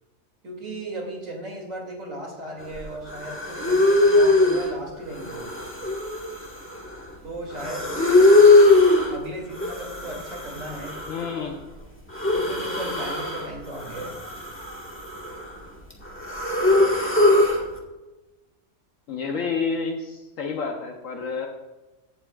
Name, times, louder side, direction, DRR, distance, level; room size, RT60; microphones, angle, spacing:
voice 1, 0.4-5.5 7.2-8.4 9.1-10.9 12.3-14.2, right 1 dB, 70° right, -1 dB, 3.1 m, -36 dB
sound 1, 2.8-2.9 3.1-4.7 5.1-7.1 7.5-9.2 9.5-11.5 12.1-13.5 13.8-15.6 15.9-17.6, left 2 dB, 10° left, 1.5 m, -20 dB
voice 2, 11.1-11.6 19.1-21.5, left 5 dB, 70° left, 1 dB, 1.3 m, -29 dB
15.5 x 8.5 x 2.4 m, 1.1 s
omnidirectional pair, 1.4 m